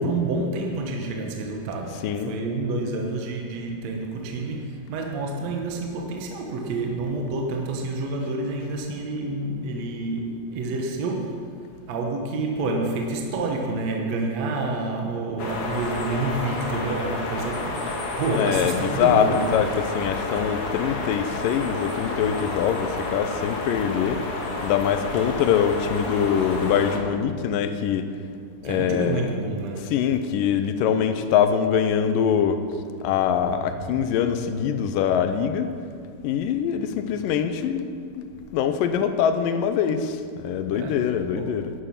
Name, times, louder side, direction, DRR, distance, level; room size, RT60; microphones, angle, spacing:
voice 1, 0.0-11.5 11.9-19.5 28.6-29.9 36.9-37.1 40.7-41.0 41.3-41.5, right 3 dB, 65° right, 1 dB, 1.8 m, -28 dB
voice 2, 1.9-2.4 18.3-24.3 24.6-28.1 28.6-29.3 29.8-32.6 33.0-35.7 36.2-38.3 38.5-41.7, left 8 dB, 80° left, 9 dB, 2.2 m, -23 dB
sound 1, 15.4-27.0, left 2 dB, 55° left, 1.8 m, -30 dB
11.0 x 11.0 x 5.9 m, 2.2 s
omnidirectional pair, 4.2 m